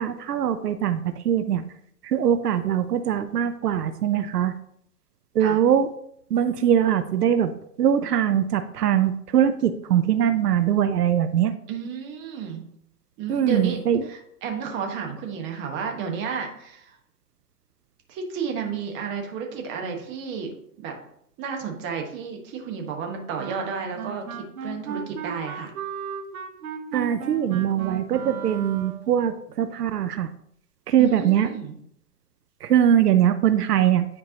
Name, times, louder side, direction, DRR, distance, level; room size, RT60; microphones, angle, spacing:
voice 1, 0.0-1.6 2.0-4.5 5.3-5.9 6.3-7.5 7.8-11.5 13.3-14.0 26.9-30.3 30.9-31.5 32.6-34.1, right 9 dB, 80° right, 11 dB, 0.7 m, -22 dB
voice 2, 11.7-12.7 13.2-17.0 18.1-20.5 20.8-20.9 21.4-25.7 27.5-27.6 31.0-31.8, right 6 dB, 25° right, 2 dB, 1.2 m, -32 dB
Wind instrument woodwind instrument, 23.4-29.1, right 7 dB, 65° right, 1.2 m, -35 dB
9.8 x 4.6 x 2.8 m, 0.70 s
hypercardioid pair, 130°, 46 cm